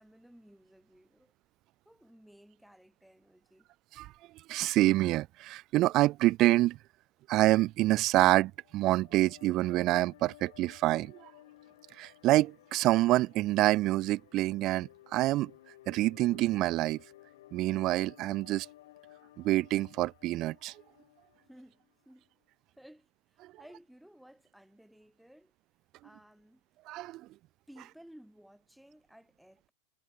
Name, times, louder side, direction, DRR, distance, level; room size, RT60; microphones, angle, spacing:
voice 1, 0.0-1.3 1.9-3.7 21.5-22.2 22.7-25.5 26.0-26.6 27.7-29.7, equal, ahead, 7.3 m, -57 dB
voice 2, 4.5-6.8 7.3-11.3 12.0-15.5 15.9-17.0 17.5-18.7 19.4-20.7 26.9-27.2, right 17 dB, 35° right, 0.3 m, -27 dB
sound 1, 8.5-21.9, left 15 dB, 75° left, 5.9 m, -57 dB
supercardioid pair, 150°, 0 cm